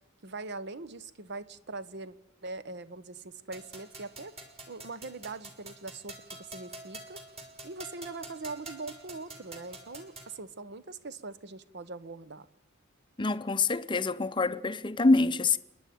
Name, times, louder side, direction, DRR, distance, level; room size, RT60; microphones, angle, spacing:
voice 1, 0.2-2.1 2.4-4.4 4.7-7.2 7.6-12.5, right 3 dB, 55° right, 0.9 m, -42 dB
sound 1, 3.5-10.3, right 2 dB, 30° right, 3.2 m, -47 dB
voice 2, 13.2-15.6, left 3 dB, 25° left, 0.6 m, -26 dB
30.0 x 10.5 x 9.3 m
head